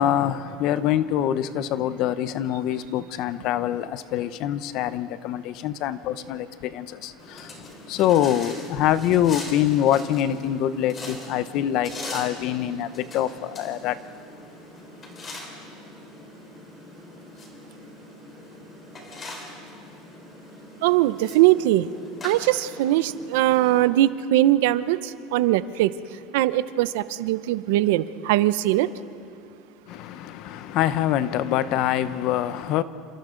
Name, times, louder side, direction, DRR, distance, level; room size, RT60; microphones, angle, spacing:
voice 1, 0.0-14.0 29.9-32.8, left 11 dB, 55° left, 0.8 m, -25 dB
sound 1, 7.2-23.8, left 2 dB, 25° left, 3.9 m, -41 dB
voice 2, 20.8-21.9 22.2-25.0 25.3-25.9 26.3-28.9, right 15 dB, 80° right, 0.7 m, -21 dB
28.0 x 27.0 x 3.9 m
supercardioid pair, 140°, 0 cm